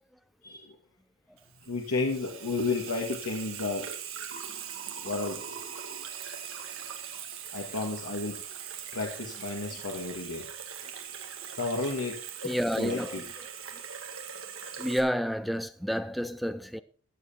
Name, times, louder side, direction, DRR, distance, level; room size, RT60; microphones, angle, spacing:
voice 1, 0.4-0.7 1.7-4.0 5.0-5.4 7.5-8.4 8.9-10.5 11.6-12.2 12.8-13.2, left 3 dB, 85° left, 1.9 m, -32 dB
Water tap faucet / Sink (filling or washing), 1.4-15.0, right 8 dB, 65° right, 1.9 m, -41 dB
voice 2, 12.4-13.2 13.7-13.8 14.8-16.8, equal, ahead, 0.5 m, -30 dB
14.5 x 7.7 x 4.4 m
head